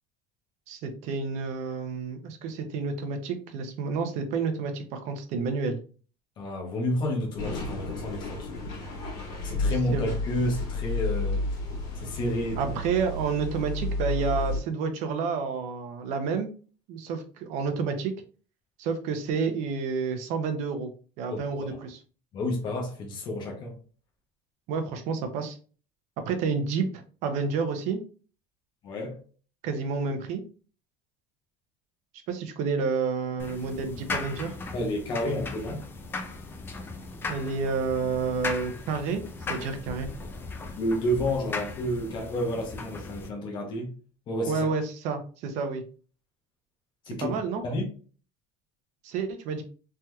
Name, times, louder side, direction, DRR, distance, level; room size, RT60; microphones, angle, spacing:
voice 1, 0.7-5.8 9.7-10.1 12.6-16.5 16.9-18.1 18.8-20.9 21.2-22.0 24.7-25.6 26.3-28.0 29.6-30.4 32.3-34.6 37.3-39.2 39.5-40.1 44.5-45.8 47.2-47.6 49.0-49.6, right 5 dB, 50° right, 0.6 m, -30 dB
voice 2, 6.4-8.6 9.4-11.5 12.0-12.7 21.3-21.7 22.3-23.7 28.8-29.2 34.7-35.8 40.8-43.9 44.3-44.7 47.1-47.3 47.6-47.9, left 1 dB, 30° left, 0.8 m, -30 dB
sound 1, 7.4-14.6, left 2 dB, 65° left, 1.6 m, -31 dB
sound 2, 33.4-43.3, left 3 dB, 15° left, 0.3 m, -37 dB
3.4 x 2.8 x 2.2 m
cardioid pair, 170°, 16 cm